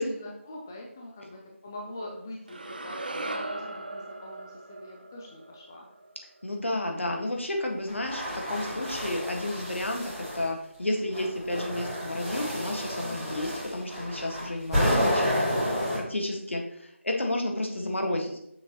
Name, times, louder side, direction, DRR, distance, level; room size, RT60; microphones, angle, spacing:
voice 1, 0.0-5.9 13.0-13.4, left 1 dB, 15° left, -1 dB, 0.4 m, -43 dB
sound 1, 2.5-6.7, right 2 dB, 45° right, 0.7 m, -38 dB
voice 2, 6.4-16.6 17.0-18.4, left 1 dB, 65° left, 2 dB, 1.7 m, -31 dB
sound 2, 7.9-10.5 11.1-16.0, equal, ahead, 1.4 m, -30 dB
7.0 x 6.4 x 3.0 m, 0.77 s
figure-of-eight pair, 165°, 7 cm